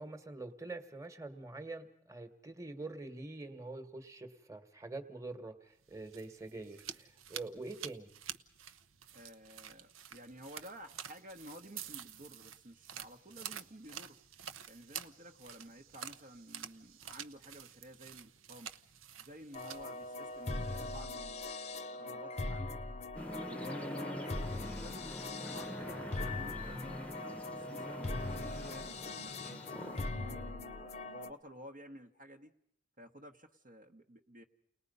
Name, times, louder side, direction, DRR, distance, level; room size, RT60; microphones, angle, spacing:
voice 1, 0.0-8.1, right 2 dB, 15° right, 8 dB, 1.4 m, -45 dB
sound 1, 5.8-21.0, right 9 dB, 90° right, 0.9 m, -49 dB
voice 2, 9.1-14.2 14.7-18.7 19.2-22.8 23.3-26.8 27.2-29.4 29.8-32.5 33.0-34.4, equal, 40° right, 2 dB, 1.0 m, -53 dB
sound 2, 19.5-31.3, left 2 dB, 30° left, 0.8 m, -41 dB
sound 3, 23.1-30.0, left 1 dB, 5° left, 0.9 m, -44 dB
30.0 x 20.0 x 5.4 m, 0.70 s
head